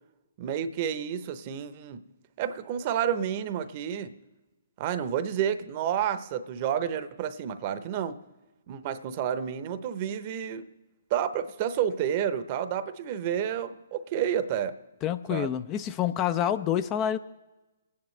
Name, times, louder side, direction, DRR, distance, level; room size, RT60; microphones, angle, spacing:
voice 1, 0.4-2.0 2.4-4.1 4.8-8.2 8.7-10.7 11.1-14.8 15.3-15.5, right 9 dB, 40° right, 12 dB, 0.8 m, -30 dB
voice 2, 15.0-17.2, left 10 dB, 25° left, 12 dB, 0.4 m, -27 dB
28.5 x 9.5 x 3.2 m, 1.1 s
hypercardioid pair, 135°, 0 cm